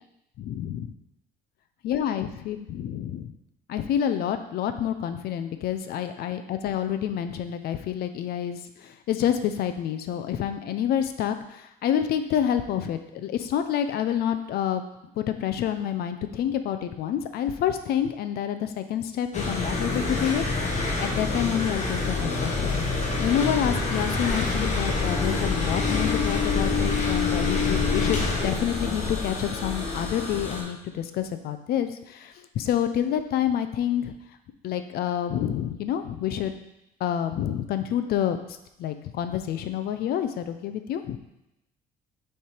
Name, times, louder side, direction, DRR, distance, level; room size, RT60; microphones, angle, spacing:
voice 1, 0.4-0.9 1.8-3.3 3.7-14.8 15.2-34.1 34.6-36.5 37.0-41.2, left 10 dB, 65° left, 9 dB, 0.5 m, -28 dB
sound 1, 19.3-30.6, left 3 dB, 45° left, 1.3 m, -26 dB
6.6 x 3.3 x 4.4 m, 0.86 s
cardioid pair, 110°, 17 cm